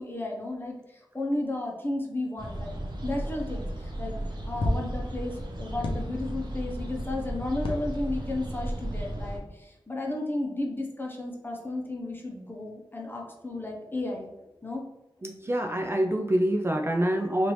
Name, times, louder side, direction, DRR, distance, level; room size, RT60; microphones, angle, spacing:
voice 1, 0.0-4.2 4.5-14.3 14.6-14.8, left 2 dB, 25° left, -1 dB, 0.7 m, -33 dB
sound 1, 2.4-9.4, right 1 dB, 60° right, 0.7 m, -35 dB
sound 2, 4.6-4.9 5.8-6.4 7.6-8.3 8.8-8.9, left 1 dB, 85° left, 0.6 m, -31 dB
voice 2, 15.2-17.5, right 1 dB, 25° right, 1 dB, 0.3 m, -26 dB
3.2 x 2.5 x 3.0 m, 0.95 s
wide cardioid pair, 75°, 9 cm